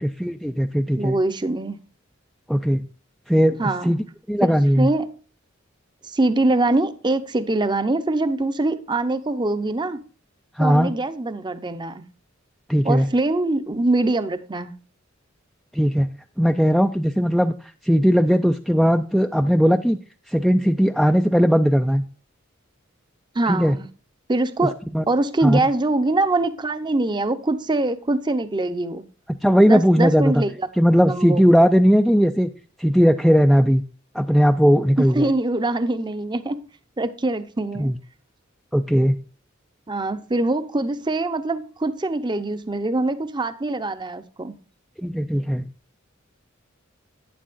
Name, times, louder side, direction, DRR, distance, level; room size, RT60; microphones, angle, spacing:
voice 1, 0.0-1.1 2.5-2.8 3.3-4.9 10.6-10.9 12.7-13.1 15.7-16.1 16.4-17.5 17.8-20.0 20.3-22.0 23.5-23.7 24.9-25.0 25.4-25.6 29.4-30.3 30.8-32.5 32.8-33.8 34.1-35.3 37.8-38.0 38.7-39.1 45.0-45.6, equal, ahead, 0.3 m, -18 dB
voice 2, 1.0-1.8 3.6-3.9 4.5-5.1 6.1-10.0 10.6-12.0 12.8-14.7 23.3-23.9 24.3-24.8 25.1-29.0 29.6-30.7 31.1-31.4 35.0-36.6 37.0-37.9 39.9-44.5, right 2 dB, 20° right, 0.7 m, -23 dB
11.0 x 9.4 x 2.5 m
head